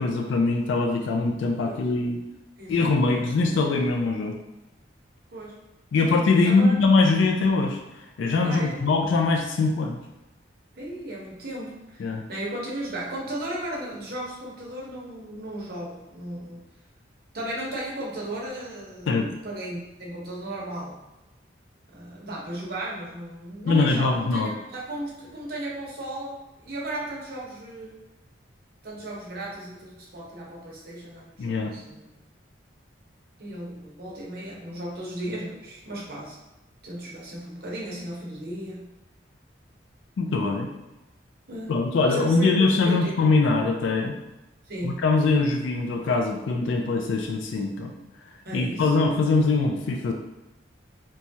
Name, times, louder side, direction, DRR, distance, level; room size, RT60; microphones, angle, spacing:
voice 1, 0.0-2.2 2.7-4.4 5.9-7.8 8.2-10.0 12.0-12.2 19.1-19.3 23.6-24.5 31.4-31.7 40.2-40.7 41.7-44.2 44.8-47.9 48.5-50.1, left 3 dB, 75° left, 3 dB, 0.3 m, -22 dB
voice 2, 2.6-3.3 5.3-5.6 6.4-6.8 8.4-8.8 10.7-16.6 17.3-21.0 21.9-28.0 28.8-32.1 33.4-36.4 36.8-38.9 41.5-41.7 42.1-43.1 44.6-45.1 48.4-48.9, right 1 dB, 50° right, -4 dB, 0.8 m, -35 dB
3.0 x 2.3 x 2.6 m, 0.98 s
head